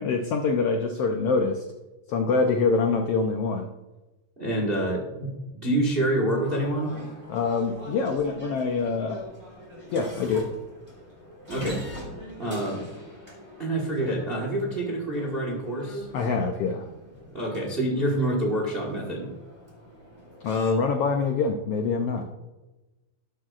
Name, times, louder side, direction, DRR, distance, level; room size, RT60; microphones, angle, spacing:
voice 1, 0.0-1.6 2.1-3.7 7.3-9.2 9.9-10.5 16.1-16.8 20.4-22.3, left 4 dB, 85° left, 4 dB, 1.3 m, -25 dB
voice 2, 4.4-6.9 11.5-11.8 12.4-12.8 13.6-16.1 17.3-19.3, right 1 dB, 35° right, 0 dB, 0.8 m, -27 dB
sound 1, 6.3-20.7, equal, 10° right, 3.3 m, -42 dB
12.5 x 11.5 x 2.5 m, 1.1 s
omnidirectional pair, 3.6 m